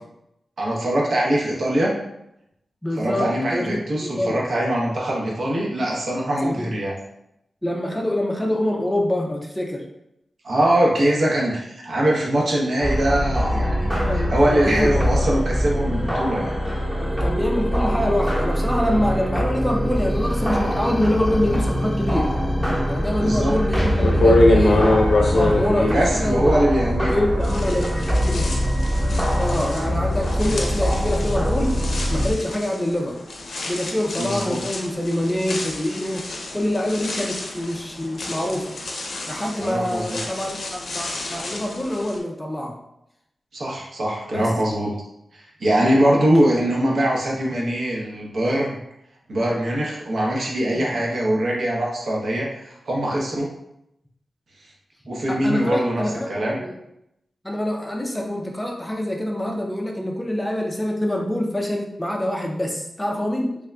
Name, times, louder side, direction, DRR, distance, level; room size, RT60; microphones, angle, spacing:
voice 1, 0.6-1.9 3.0-6.9 10.4-16.5 23.2-23.5 25.9-27.2 34.2-34.6 39.6-40.2 43.5-44.9 45.3-48.7 49.3-53.5 55.1-56.6, right 1 dB, 65° right, -3 dB, 0.8 m, -22 dB
voice 2, 2.8-4.4 6.4-6.7 7.6-9.8 11.0-11.2 14.0-14.9 15.2-15.3 17.0-22.3 22.9-24.8 25.3-26.5 27.1-27.9 28.2-28.5 29.4-31.7 32.1-33.2 33.7-38.7 39.3-42.8 44.3-44.5 50.7-50.9 55.3-56.3 56.6-56.7 57.4-63.6, left 1 dB, 10° left, 0 dB, 0.4 m, -25 dB
sound 1, 12.8-32.3, equal, 15° right, 1.0 m, -23 dB
sound 2, 23.4-23.5 24.0-27.1 27.4-42.2, left 2 dB, 75° left, 0.6 m, -26 dB
3.6 x 3.5 x 2.2 m, 0.82 s
wide cardioid pair, 140°, 0 cm